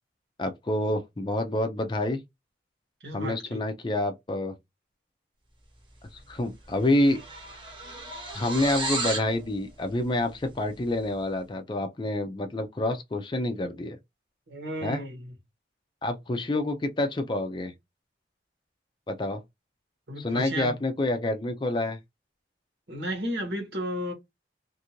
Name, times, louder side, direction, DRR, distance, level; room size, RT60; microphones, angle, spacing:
voice 1, 0.4-2.2 3.1-4.5 6.1-7.2 8.3-14.0 14.8-15.0 16.0-17.7 19.1-19.4 20.2-22.0, left 1 dB, 25° left, 0.4 m, -28 dB
voice 2, 3.0-3.6 14.5-15.2 20.1-20.7 22.9-24.1, equal, 70° right, 1.2 m, -33 dB
sound 1, 6.2-6.4 6.6-9.3, right 2 dB, 25° right, 1.0 m, -33 dB
2.6 x 2.5 x 2.9 m
head